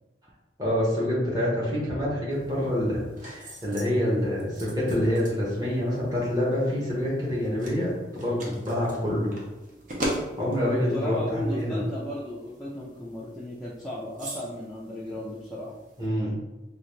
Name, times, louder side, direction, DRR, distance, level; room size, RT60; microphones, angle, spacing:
voice 1, 0.6-9.3 10.4-11.8 16.0-16.4, equal, 20° right, -6 dB, 1.1 m, -26 dB
sound 1, 2.3-16.1, right 1 dB, 45° right, 0.8 m, -41 dB
voice 2, 10.6-15.7, left 1 dB, ahead, -8 dB, 0.4 m, -35 dB
3.9 x 2.5 x 3.1 m, 1.1 s
head